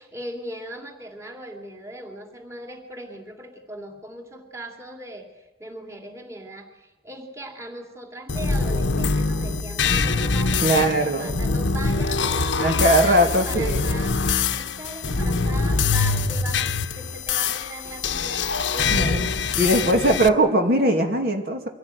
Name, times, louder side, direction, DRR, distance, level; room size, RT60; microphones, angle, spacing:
voice 1, 0.0-19.3 19.5-20.0 20.3-20.4, right 1 dB, 15° right, 3 dB, 2.8 m, -39 dB
sound 1, 8.3-20.3, left 4 dB, 80° left, 1.1 m, -24 dB
voice 2, 10.6-11.3 12.6-13.8 18.9-19.3 19.6-21.7, right 1 dB, 55° right, 3 dB, 2.5 m, -20 dB
24.5 x 16.5 x 9.4 m, 1.1 s
head